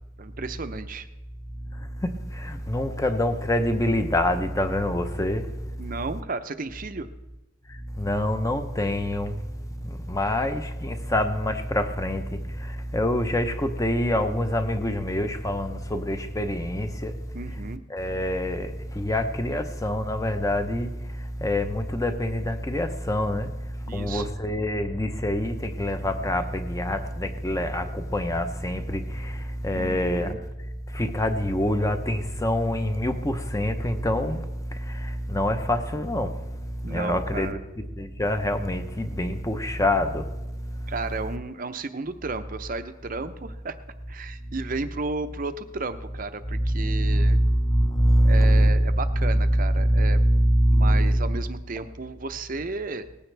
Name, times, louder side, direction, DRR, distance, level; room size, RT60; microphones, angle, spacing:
voice 1, 0.2-1.1 5.8-7.1 17.3-17.8 23.9-24.3 29.7-30.4 36.8-37.6 40.9-43.8 44.1-47.4 48.2-50.2 50.7-53.0, right 3 dB, 40° right, 0.6 m, -33 dB
voice 2, 1.7-5.9 7.7-17.2 17.5-17.6 17.9-30.3 30.6-37.6 38.0-40.9 46.5-51.3, equal, 15° left, 0.7 m, -25 dB
18.5 x 15.0 x 3.3 m
head